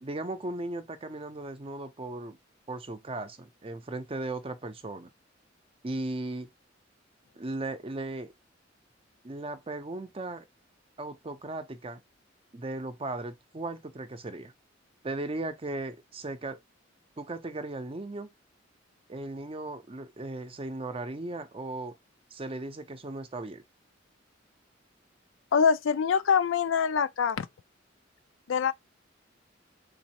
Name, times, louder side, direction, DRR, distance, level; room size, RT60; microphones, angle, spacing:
voice 1, 0.0-2.4 2.7-5.1 5.8-6.5 7.4-8.3 9.2-10.5 11.0-12.0 12.5-14.5 15.0-16.6 17.2-18.3 19.1-21.9 22.3-23.6, right 2 dB, 30° right, 0.6 m, -37 dB
voice 2, 25.5-27.5 28.5-28.7, left 6 dB, 75° left, 0.4 m, -24 dB
4.0 x 3.0 x 2.9 m
head